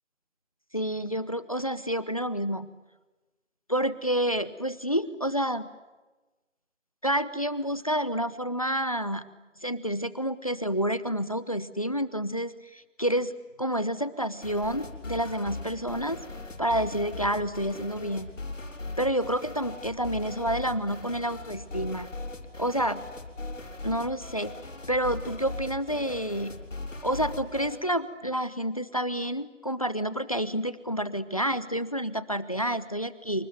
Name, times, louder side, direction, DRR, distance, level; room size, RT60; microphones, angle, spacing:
voice 1, 0.7-2.7 3.7-5.7 7.0-9.2 9.6-13.3 13.6-16.2 16.6-18.3 19.0-22.1 22.6-23.1 23.8-24.5 24.9-26.6 27.0-33.5, equal, 30° left, 16 dB, 0.8 m, -29 dB
sound 1, 14.4-27.8, left 2 dB, 80° left, 6.3 m, -39 dB
27.5 x 25.5 x 7.8 m, 1.1 s
figure-of-eight pair, 180°, 38 cm